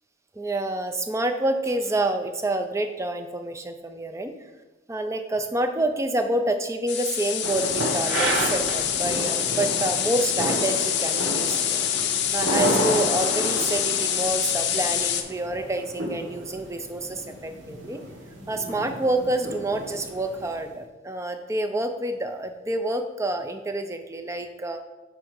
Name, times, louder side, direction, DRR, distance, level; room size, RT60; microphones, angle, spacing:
voice 1, 0.4-4.3 4.9-18.0 18.5-24.8, right 1 dB, 15° right, 6 dB, 0.4 m, -28 dB
sound 1, 6.9-15.2, left 10 dB, 55° left, 0.5 m, -26 dB
sound 2, 7.4-20.6, right 1 dB, 65° right, 1.2 m, -31 dB
4.7 x 4.1 x 5.1 m, 1.1 s
head